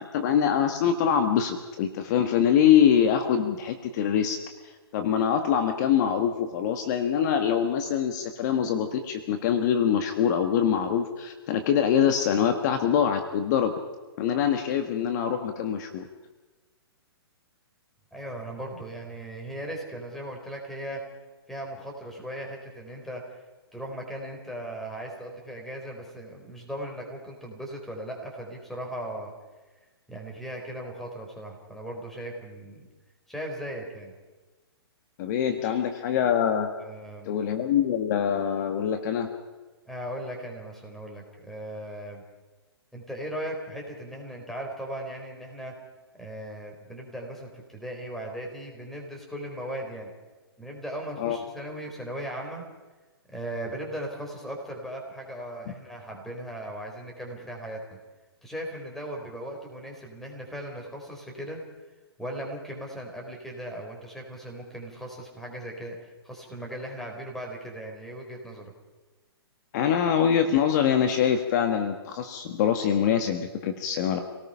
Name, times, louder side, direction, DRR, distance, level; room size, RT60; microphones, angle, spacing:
voice 1, 0.0-4.4 4.9-13.7 14.2-16.1 35.2-36.7 37.3-39.3 51.2-51.4 69.7-74.2, left 8 dB, 45° left, 6 dB, 1.8 m, -24 dB
voice 2, 18.1-21.0 21.5-23.2 23.7-29.3 30.1-32.8 33.3-34.1 35.6-35.8 36.8-37.4 39.9-42.2 42.9-45.8 46.1-50.1 50.6-52.6 53.3-58.0 58.4-61.6 62.2-68.7, right 1 dB, ahead, 0 dB, 4.5 m, -38 dB
27.0 x 18.5 x 5.7 m, 1.2 s
hypercardioid pair, 135°, 13 cm